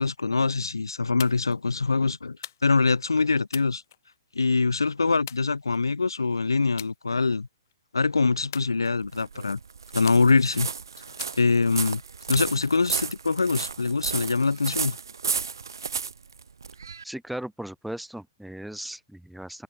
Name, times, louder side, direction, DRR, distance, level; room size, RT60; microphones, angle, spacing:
voice 1, 0.0-2.4 2.6-3.8 4.3-7.5 7.9-9.6 9.9-10.7 11.4-12.0 12.3-15.0, left 4 dB, 75° left, 0.4 m, -24 dB
sound 1, 1.2-1.6 2.4-2.9 3.5-4.5 5.3-6.1 6.8-7.0 7.4-7.7 8.5-9.3 10.1-10.7 11.2-11.7 12.3-13.1, left 10 dB, 50° left, 2.0 m, -43 dB
sound 2, 8.9-17.0, right 5 dB, 65° right, 0.9 m, -33 dB
voice 2, 17.0-19.6, right 1 dB, ahead, 0.9 m, -37 dB
open air
figure-of-eight pair, 120°, 2 cm